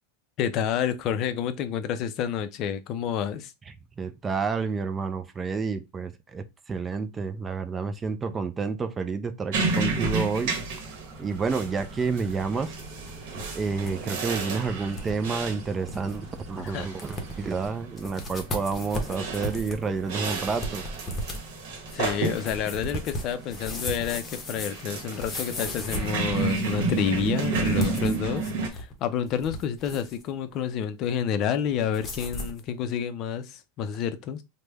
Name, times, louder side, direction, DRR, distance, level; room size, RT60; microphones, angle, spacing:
voice 1, 0.4-3.5 16.6-16.9 21.9-34.4, left 8 dB, 45° left, 0.4 m, -29 dB
voice 2, 4.0-10.6 11.2-12.8 13.5-20.9, right 4 dB, 20° right, 0.3 m, -29 dB
sound 1, 9.5-28.7, right 4 dB, 65° right, 1.0 m, -32 dB
sound 2, 10.8-17.7, right 3 dB, 40° right, 1.2 m, -45 dB
sound 3, 13.1-13.9 14.2-14.3 14.9-15.1 15.6-15.7 15.9-16.2 16.7-16.8 17.0-17.5 18.0-26.8 27.6-28.9 29.3-30.2 31.9-32.6, left 1 dB, 20° left, 0.8 m, -36 dB
3.2 x 2.1 x 3.3 m
supercardioid pair, 125°, 0 cm